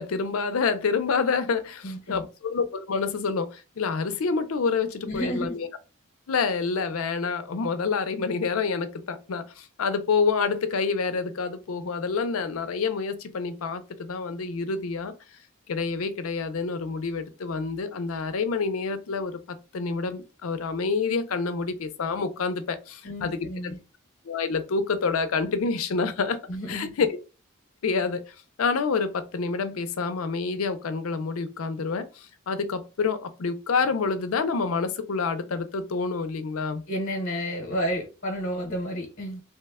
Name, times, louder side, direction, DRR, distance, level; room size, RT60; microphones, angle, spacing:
voice 1, 0.0-5.7 6.3-15.1 15.7-23.7 24.2-26.4 26.7-27.1 27.8-36.8, left 4 dB, 85° left, 0.5 m, -28 dB
voice 2, 1.8-2.2 5.0-5.6 23.0-23.8 26.5-26.9 36.9-39.4, equal, 55° left, 0.8 m, -31 dB
2.9 x 2.1 x 3.4 m
head